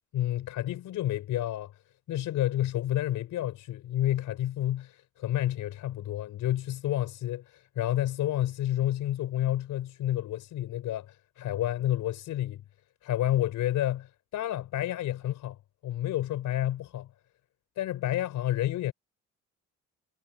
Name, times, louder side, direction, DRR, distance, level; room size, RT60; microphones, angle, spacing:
voice 1, 0.1-1.8 2.1-12.6 13.0-15.6 15.8-17.1 17.8-18.9, left 13 dB, 85° left, 4.3 m, -30 dB
cardioid pair, 90°, 30 cm